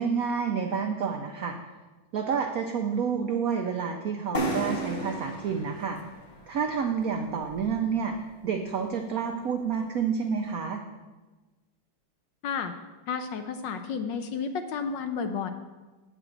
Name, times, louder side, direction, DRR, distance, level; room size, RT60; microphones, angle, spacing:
voice 1, 0.0-1.6 2.1-6.0 6.5-10.8, right 6 dB, 85° right, 4 dB, 0.7 m, -29 dB
sound 1, 4.3-8.0, right 1 dB, 35° left, 0.8 m, -34 dB
voice 2, 12.4-12.7 13.1-15.5, left 6 dB, 75° left, 8 dB, 1.1 m, -31 dB
9.1 x 4.9 x 7.7 m, 1.2 s
omnidirectional pair, 2.3 m